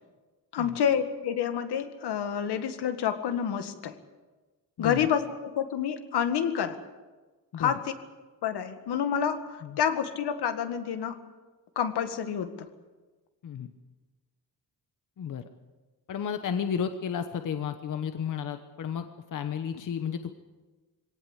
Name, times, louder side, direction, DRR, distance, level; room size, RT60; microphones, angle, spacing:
voice 1, 0.5-3.9 4.8-6.8 7.6-7.9 8.4-11.2 11.8-12.7, left 8 dB, 75° left, 8 dB, 1.9 m, -28 dB
voice 2, 16.1-19.0 19.3-20.3, left 7 dB, 50° left, 8 dB, 1.1 m, -32 dB
22.5 x 17.5 x 8.2 m, 1.3 s
wide cardioid pair, 180°, 40 cm